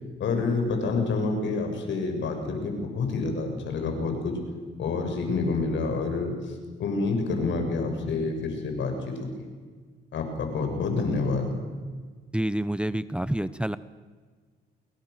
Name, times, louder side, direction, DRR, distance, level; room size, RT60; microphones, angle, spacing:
voice 1, 0.2-4.4 4.8-9.5 10.1-11.6, left 3 dB, 70° left, 5 dB, 6.6 m, -28 dB
voice 2, 12.3-13.8, right 1 dB, 5° right, 14 dB, 0.9 m, -28 dB
29.0 x 22.5 x 6.8 m, 1.5 s
cardioid pair, 90°, 20 cm